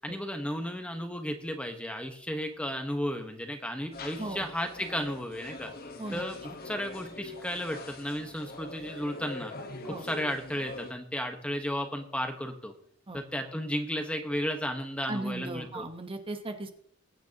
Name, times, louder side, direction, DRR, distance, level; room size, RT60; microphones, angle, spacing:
voice 1, 0.0-5.7 6.1-6.4 6.6-9.5 9.8-12.7 13.1-15.9, equal, 5° left, 5 dB, 1.2 m, -34 dB
sound 1, 3.9-10.9, left 2 dB, 50° left, 1.2 m, -43 dB
voice 2, 15.1-16.7, right 2 dB, 25° right, 6 dB, 1.1 m, -37 dB
21.5 x 9.2 x 2.9 m, 0.63 s
head